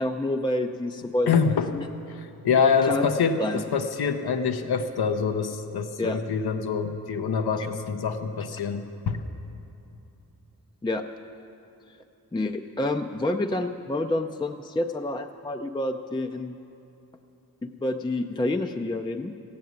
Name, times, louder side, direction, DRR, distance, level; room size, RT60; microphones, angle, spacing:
voice 1, 0.0-1.9 2.8-3.1 3.4-3.6 6.0-6.2 7.6-7.7 10.8-11.0 12.3-16.6 17.6-19.3, left 1 dB, 15° left, 6 dB, 0.4 m, -28 dB
voice 2, 1.3-1.8 2.2-3.4 3.7-9.2, left 6 dB, 80° left, 7 dB, 0.8 m, -25 dB
15.0 x 8.8 x 9.3 m, 2.9 s
wide cardioid pair, 115°, 38 cm